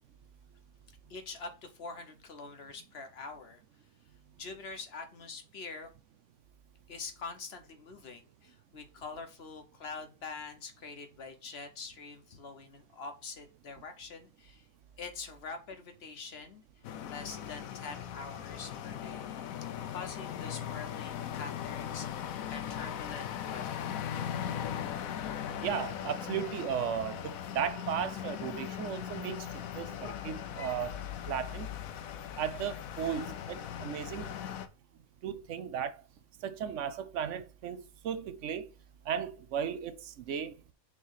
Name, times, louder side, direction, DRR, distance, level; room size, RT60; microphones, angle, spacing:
voice 1, 1.1-3.6 4.4-5.9 6.9-14.7 15.0-16.6 17.1-19.3 19.9-23.8, left 4 dB, 50° left, 1.1 m, -45 dB
sound 1, 16.8-34.7, left 9 dB, 70° left, 1.1 m, -39 dB
voice 2, 25.6-29.5 29.8-31.0 31.3-31.7 32.4-34.3 35.2-36.0 36.4-38.7 39.1-40.6, right 8 dB, 65° right, 0.8 m, -35 dB
6.4 x 3.1 x 5.6 m
omnidirectional pair, 1.6 m